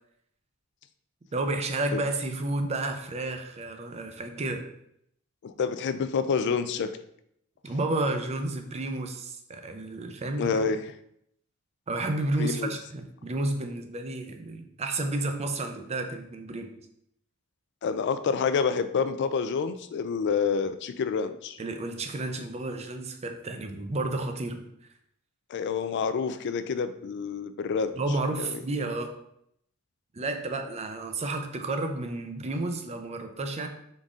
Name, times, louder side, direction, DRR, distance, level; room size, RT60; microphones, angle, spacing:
voice 1, 1.3-4.6 7.6-10.6 11.9-16.7 21.6-24.6 28.0-29.1 30.1-33.7, right 2 dB, 30° right, 6 dB, 0.5 m, -31 dB
voice 2, 5.4-6.9 10.4-10.8 12.4-12.7 17.8-21.6 25.5-27.9 28.4-28.6, left 5 dB, 55° left, 11 dB, 0.3 m, -28 dB
4.0 x 3.7 x 3.6 m, 0.75 s
head